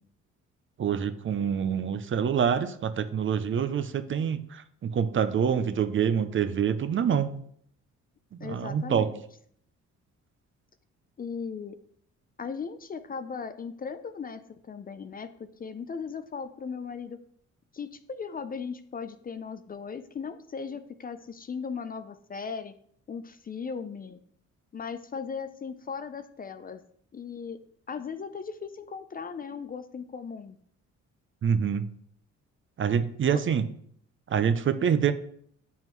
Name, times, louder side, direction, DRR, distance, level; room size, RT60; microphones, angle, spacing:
voice 1, 0.8-7.4 8.3-9.1 31.4-31.9 32.8-33.7 34.3-35.1, right 7 dB, 40° right, 11 dB, 0.5 m, -26 dB
voice 2, 8.4-9.2 11.2-11.8 12.4-17.2 17.7-22.7 23.1-24.2 24.7-26.8 27.1-27.6 27.9-30.6 33.3-33.4, left 5 dB, 30° left, 11 dB, 0.4 m, -37 dB
7.4 x 5.5 x 3.1 m, 0.66 s
cardioid pair, 90°, 30 cm